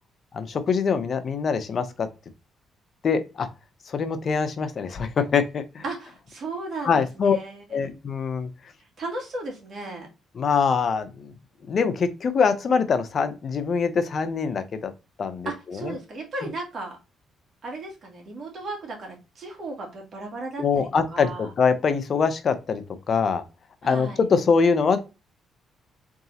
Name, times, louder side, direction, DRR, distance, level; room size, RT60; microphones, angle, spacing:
voice 1, 0.3-2.1 3.0-3.5 3.9-5.8 6.8-7.4 7.7-8.5 10.4-11.3 11.7-14.9 15.2-15.5 15.8-15.9 20.6-23.4 23.8-25.0, left 5 dB, 50° left, 10 dB, 0.7 m, -23 dB
voice 2, 5.8-7.8 9.0-10.1 15.5-17.0 17.6-21.5 23.8-24.2, right 2 dB, 55° right, 0 dB, 2.1 m, -35 dB
3.9 x 3.6 x 2.8 m, 0.28 s
cardioid pair, 90°, 0 cm